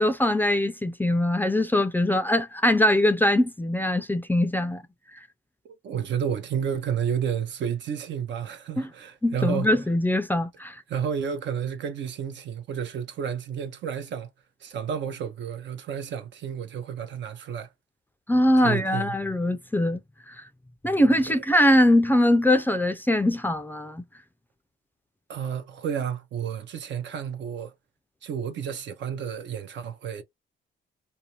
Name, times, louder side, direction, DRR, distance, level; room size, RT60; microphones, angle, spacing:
voice 1, 0.0-4.8 8.8-8.9 9.2-10.8 18.3-20.0 20.3-20.4 20.8-24.0, left 1 dB, 10° left, 0.4 m, -22 dB
voice 2, 5.6-9.8 10.9-14.3 14.6-17.7 18.6-19.1 25.3-27.7 28.2-30.2, right 8 dB, 65° right, 0.7 m, -31 dB
2.6 x 2.1 x 2.8 m
cardioid pair, 90°, 20 cm